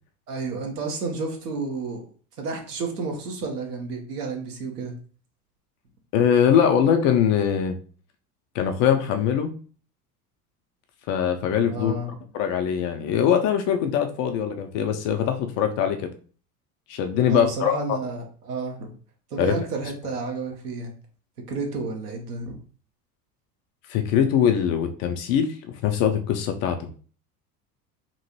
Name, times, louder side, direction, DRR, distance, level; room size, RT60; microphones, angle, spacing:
voice 1, 0.3-2.0 2.4-4.9 11.7-12.2 17.3-18.2 18.4-18.9 19.3-20.9 21.5-22.6, right 3 dB, 75° right, 2 dB, 1.0 m, -31 dB
voice 2, 6.1-7.8 8.5-9.5 11.1-11.9 12.3-16.1 16.9-18.0 19.4-19.6 23.9-25.6 25.8-26.9, left 8 dB, 35° left, 6 dB, 0.4 m, -22 dB
3.0 x 2.6 x 2.8 m, 0.41 s
figure-of-eight pair, 75°, 47 cm